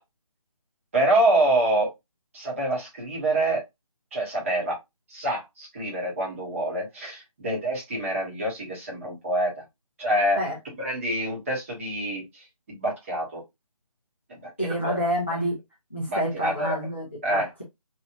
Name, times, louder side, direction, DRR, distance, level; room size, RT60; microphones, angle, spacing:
voice 1, 0.9-1.9 2.3-3.6 4.1-4.8 5.1-9.5 10.0-10.4 10.8-13.4 14.8-14.9 16.1-16.8 17.2-17.5, right 1 dB, 20° right, 1.1 m, -26 dB
voice 2, 14.6-15.6 15.9-17.1 17.3-17.6, equal, 20° left, 0.4 m, -28 dB
2.9 x 2.5 x 2.4 m
figure-of-eight pair, 155°, 19 cm